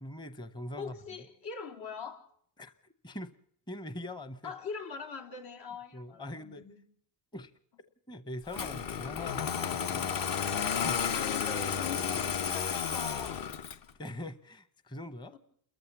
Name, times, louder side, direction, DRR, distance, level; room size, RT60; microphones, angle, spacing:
voice 1, 0.0-1.0 2.6-3.3 3.7-4.5 5.9-6.6 7.3-7.5 8.1-11.1 14.0-15.4, left 1 dB, 10° left, 0.8 m, -43 dB
voice 2, 0.8-2.3 4.4-6.8 11.1-13.5 15.3-15.4, left 5 dB, 70° left, 4.1 m, -42 dB
Engine starting, 8.5-13.9, left 7 dB, 50° left, 1.1 m, -32 dB
29.5 x 14.0 x 7.2 m
cardioid pair, 140°, 44 cm